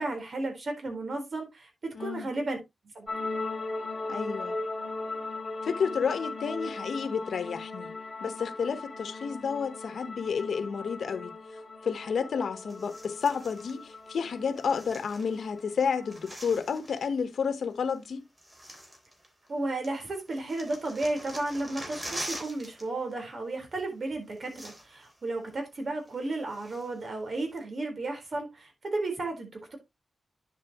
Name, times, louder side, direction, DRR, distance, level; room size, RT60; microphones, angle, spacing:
voice 1, 0.0-2.6 2.9-3.1 19.5-29.8, right 2 dB, 55° right, 4.0 m, -33 dB
voice 2, 1.9-2.3 4.1-4.6 5.6-7.9 8.2-11.3 11.8-18.2, left 6 dB, 85° left, 1.0 m, -31 dB
sound 1, 3.1-16.3, left 3 dB, 30° left, 3.4 m, -38 dB
sound 2, 12.7-13.8 14.5-15.6 15.9-17.1 17.9-18.0 18.4-19.6 19.8-22.9 23.1-23.3 24.1-24.2 24.4-25.1 25.5-25.6 26.1-27.0 27.6-27.7, equal, 20° right, 3.5 m, -44 dB
10.0 x 7.4 x 2.9 m
wide cardioid pair, 95°, 0 cm